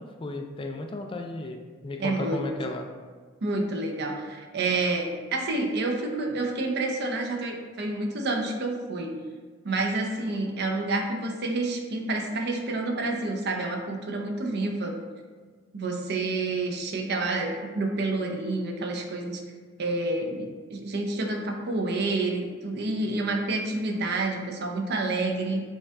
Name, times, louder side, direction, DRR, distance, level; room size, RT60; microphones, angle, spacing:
voice 1, 0.0-2.9, left 2 dB, 25° left, 3 dB, 0.3 m, -34 dB
voice 2, 2.0-2.4 3.4-9.1 9.6-15.0 15.7-19.4 19.8-25.6, right 2 dB, 60° right, 2 dB, 0.6 m, -29 dB
5.3 x 2.3 x 3.5 m, 1.5 s
head